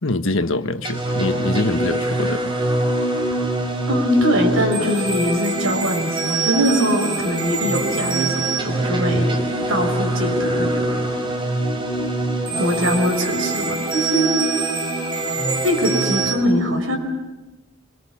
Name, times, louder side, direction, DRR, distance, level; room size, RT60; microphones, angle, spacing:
voice 1, 0.0-2.5, left 2 dB, 80° left, 9 dB, 1.4 m, -24 dB
sound 1, 0.8-16.3, right 2 dB, 25° right, 5.3 m, -23 dB
voice 2, 3.9-9.2 9.7-11.0 12.5-14.3 15.6-17.0, equal, 90° right, 3 dB, 5.7 m, -22 dB
Wind instrument woodwind instrument, 7.6-12.5, left 1 dB, 10° left, 5.6 m, -40 dB
27.0 x 24.0 x 7.2 m, 1.1 s
head